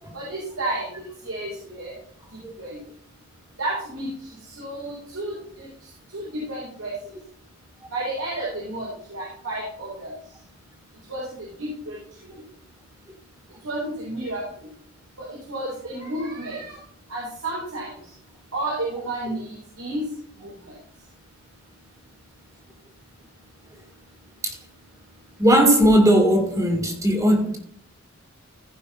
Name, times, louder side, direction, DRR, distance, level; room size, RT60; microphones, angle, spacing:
voice 1, 0.1-0.9 1.2-1.9 2.6-2.8 3.6-4.1 4.6-5.7 6.1-6.9 7.9-10.1 11.1-12.0 13.6-14.4 15.2-16.8 17.1-17.9 18.5-20.0 20.4-20.5, right 2 dB, 85° right, -5 dB, 3.8 m, -31 dB
voice 2, 25.4-27.6, equal, 15° right, 3 dB, 1.9 m, -18 dB
15.5 x 5.6 x 4.1 m, 0.63 s
head